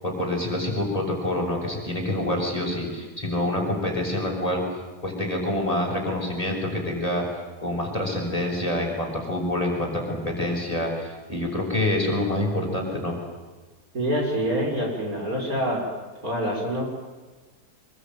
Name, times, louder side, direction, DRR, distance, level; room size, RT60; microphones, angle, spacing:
voice 1, 0.0-4.6 5.0-7.2 7.6-13.1, left 1 dB, 20° left, -1 dB, 7.0 m, -26 dB
voice 2, 13.9-15.9 16.2-16.8, equal, 55° right, 0 dB, 6.4 m, -26 dB
25.5 x 23.0 x 9.4 m, 1.3 s
omnidirectional pair, 1.8 m